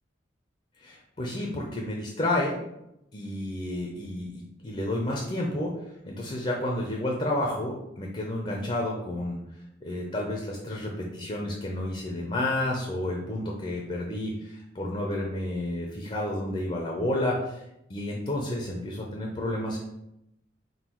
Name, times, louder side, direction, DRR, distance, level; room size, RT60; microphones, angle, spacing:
voice 1, 0.8-2.6 3.1-9.4 9.8-17.6 17.9-19.8, left 1 dB, 30° left, -1 dB, 0.5 m, -31 dB
3.7 x 2.2 x 4.4 m, 0.85 s
head